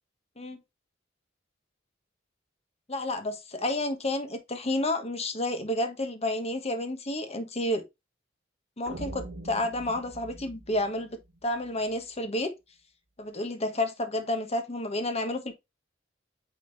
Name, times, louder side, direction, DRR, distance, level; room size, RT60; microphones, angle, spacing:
voice 1, 2.9-7.8 8.8-12.5 13.2-15.5, left 1 dB, 35° left, 1.3 m, -30 dB
sound 1, 8.9-12.0, right 1 dB, 80° right, 1.7 m, -43 dB
8.9 x 3.8 x 3.4 m
head